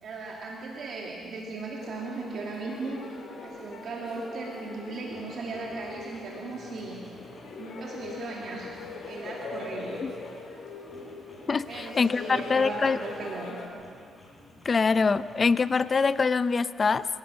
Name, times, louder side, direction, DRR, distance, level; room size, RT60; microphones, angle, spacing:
voice 1, 0.0-3.0 3.4-7.0 7.6-8.7 9.0-10.0 11.7-13.6, right 3 dB, 60° right, -2 dB, 2.7 m, -37 dB
sound 1, 1.8-13.7, left 3 dB, 70° left, 3.6 m, -41 dB
sound 2, 4.5-4.7 5.1-7.6 8.0-10.5 10.9-13.4 13.7-16.1, left 1 dB, 20° left, 6.6 m, -54 dB
voice 2, 11.5-13.0 14.6-17.1, left 4 dB, 35° left, 15 dB, 0.6 m, -24 dB
25.5 x 17.0 x 6.5 m, 2.3 s
cardioid pair, 90°, 0 cm